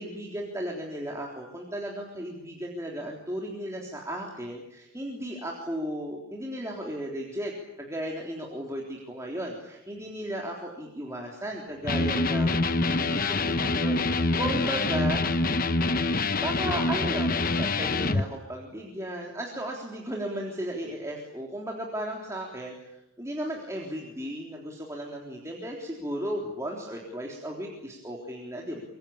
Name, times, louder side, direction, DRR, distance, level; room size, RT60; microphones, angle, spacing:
voice 1, 0.0-7.5 7.8-15.2 16.4-22.9 23.2-28.8, right 1 dB, 15° right, -1 dB, 3.6 m, -35 dB
Electric guitar, 11.8-18.3, left 3 dB, 40° left, 1.1 m, -25 dB
25.5 x 25.0 x 8.8 m, 0.90 s
head